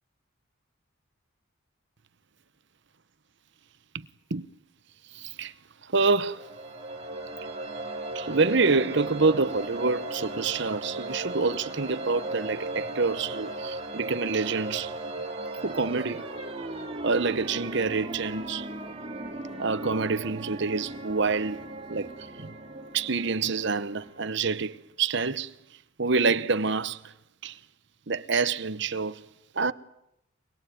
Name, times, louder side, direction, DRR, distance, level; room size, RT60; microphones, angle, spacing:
voice 1, 3.9-4.5 5.1-5.5 5.9-6.4 8.1-14.9 15.6-16.2 17.0-18.7 19.6-22.1 22.4-22.5 22.9-25.5 26.0-27.0 27.4-27.6 28.1-29.2 29.5-29.7, right 4 dB, 55° right, 1.0 m, -27 dB
sound 1, 6.2-24.8, right 2 dB, 30° right, 2.6 m, -37 dB
23.0 x 22.5 x 9.2 m
head